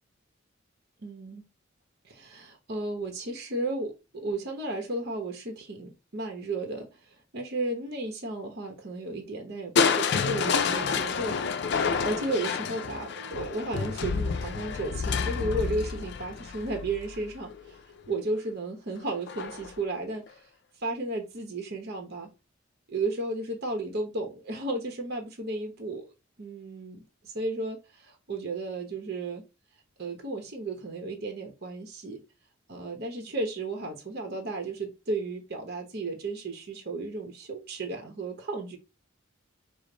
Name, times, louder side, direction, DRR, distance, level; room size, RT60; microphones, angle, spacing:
voice 1, 1.0-1.4 2.0-17.8 18.1-20.4 20.8-22.3 22.9-26.1 26.4-29.4 30.0-32.2 32.7-38.8, right 2 dB, 55° right, 0.9 m, -34 dB
Crushing, 9.8-17.7 19.3-19.8 20.3-20.4, left 5 dB, 60° left, 0.4 m, -29 dB
5.0 x 2.1 x 3.8 m
head